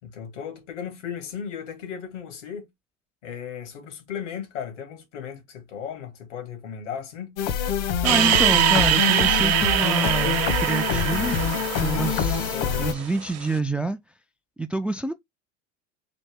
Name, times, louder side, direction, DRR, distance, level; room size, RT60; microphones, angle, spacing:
voice 1, 0.0-2.7 3.2-7.3 12.5-12.9, left 8 dB, 85° left, 2.3 m, -36 dB
sound 1, 7.4-12.9, left 8 dB, 65° left, 1.2 m, -25 dB
voice 2, 8.0-11.4 11.8-14.0 14.6-15.1, right 2 dB, 5° right, 0.3 m, -27 dB
sound 2, 8.0-13.4, right 12 dB, 45° right, 0.9 m, -23 dB
4.2 x 2.9 x 3.5 m
hypercardioid pair, 95°, 36 cm